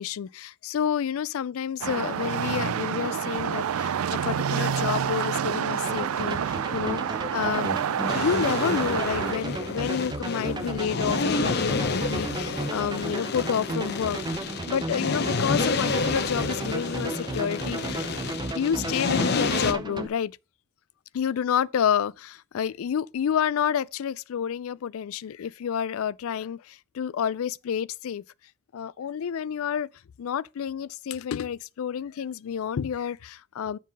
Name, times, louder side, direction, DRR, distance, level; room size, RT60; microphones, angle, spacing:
voice 1, 0.0-18.1 18.5-20.3 21.1-28.2 28.7-29.9 30.2-33.8, left 8 dB, 70° left, 0.3 m, -29 dB
sound 1, 1.8-9.3, right 8 dB, 80° right, 0.4 m, -28 dB
sound 2, 5.9-20.1, right 2 dB, 20° right, 0.5 m, -34 dB
sound 3, 8.1-19.7, left 4 dB, 50° left, 0.8 m, -30 dB
7.4 x 5.6 x 5.2 m
head